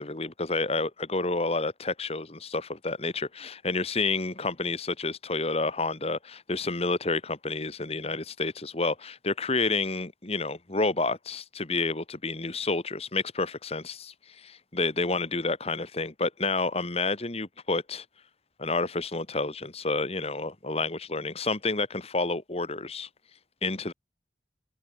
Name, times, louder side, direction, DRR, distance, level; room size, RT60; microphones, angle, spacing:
voice 1, 0.0-18.0 18.6-23.1 23.6-23.9, left 3 dB, 35° left, 1.8 m, -29 dB
head